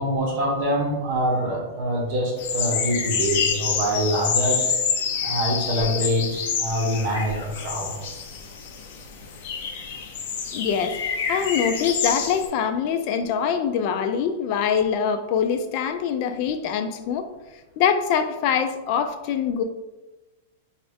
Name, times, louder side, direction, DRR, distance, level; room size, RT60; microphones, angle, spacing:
voice 1, 0.0-4.7 5.2-7.9, equal, 40° right, -1 dB, 1.1 m, -25 dB
sound 1, 2.4-12.5, left 6 dB, 55° left, 0.7 m, -27 dB
voice 2, 10.5-11.0 11.3-17.3 17.8-19.6, left 7 dB, 40° left, 8 dB, 0.3 m, -24 dB
5.0 x 2.4 x 3.4 m, 1.1 s
supercardioid pair, 155°, 0 cm